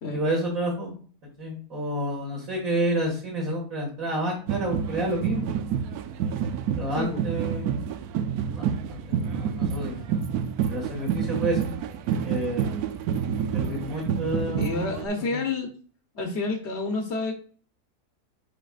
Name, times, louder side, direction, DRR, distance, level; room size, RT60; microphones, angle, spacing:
voice 1, 0.1-0.9 1.4-5.6 6.7-7.8 8.5-10.1 10.7-11.6 12.2-12.7 13.5-14.9 15.3-15.4, right 1 dB, 60° right, -4 dB, 2.2 m, -29 dB
sound 1, 4.5-15.1, right 8 dB, 75° right, 1.1 m, -28 dB
voice 2, 14.6-15.7 16.1-17.3, left 3 dB, 50° left, 3 dB, 1.1 m, -29 dB
8.9 x 5.1 x 2.4 m, 0.43 s
omnidirectional pair, 1.6 m